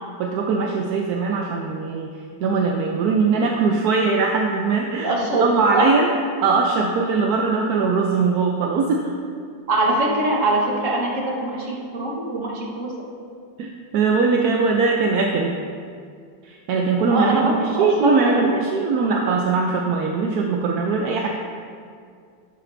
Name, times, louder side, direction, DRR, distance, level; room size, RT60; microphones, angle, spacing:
voice 1, 0.2-2.1 2.4-6.1 6.4-9.1 13.6-15.6 16.4-21.3, right 4 dB, 65° right, 0 dB, 1.0 m, -21 dB
voice 2, 5.0-5.9 9.7-13.0 17.1-18.6, right 2 dB, 45° right, -2 dB, 1.6 m, -23 dB
11.0 x 10.0 x 2.7 m, 2.2 s
omnidirectional pair, 2.1 m